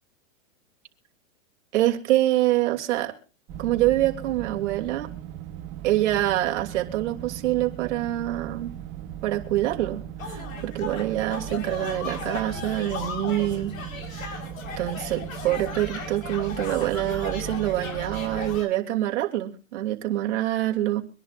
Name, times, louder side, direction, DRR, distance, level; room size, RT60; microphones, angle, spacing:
voice 1, 1.7-3.2 3.6-5.1 5.8-8.7 9.2-13.7 14.1-14.4 14.8-21.0, right 14 dB, 60° right, 3.0 m, -25 dB
sound 1, 3.5-18.6, right 11 dB, 30° right, 1.8 m, -38 dB
sound 2, 10.2-18.7, left 5 dB, 85° left, 4.5 m, -37 dB
25.0 x 11.0 x 2.5 m
hypercardioid pair, 145°, 39 cm